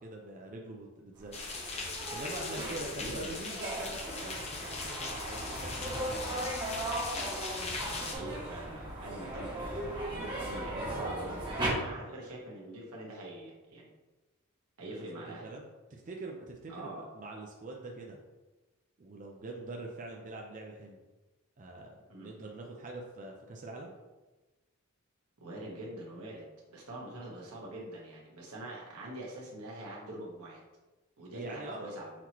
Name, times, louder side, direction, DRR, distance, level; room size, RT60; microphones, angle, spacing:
voice 1, 0.0-1.4 2.1-6.5 14.9-18.2 19.0-21.0 21.6-23.9 31.3-32.0, right 2 dB, 35° right, 0 dB, 0.4 m, -44 dB
sound 1, 1.2-11.7, right 1 dB, 20° right, 1.2 m, -38 dB
sound 2, 1.3-8.1, left 3 dB, 30° left, 0.6 m, -40 dB
voice 2, 3.0-3.4 7.8-13.9 14.8-15.5 16.7-17.1 22.1-22.3 25.4-30.6 31.2-32.1, right 1 dB, 90° right, -3 dB, 1.2 m, -44 dB
5.7 x 3.0 x 2.9 m, 1.2 s
head